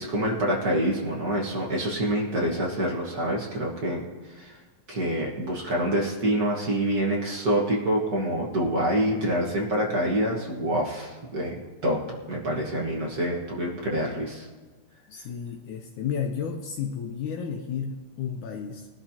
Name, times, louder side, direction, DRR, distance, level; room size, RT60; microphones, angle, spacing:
voice 1, 0.0-4.6 4.9-12.0 12.3-14.5, right 1 dB, 55° right, -3 dB, 1.0 m, -26 dB
voice 2, 15.1-18.9, left 7 dB, 70° left, 3 dB, 2.0 m, -32 dB
20.5 x 12.0 x 2.9 m, 1.3 s
omnidirectional pair, 4.0 m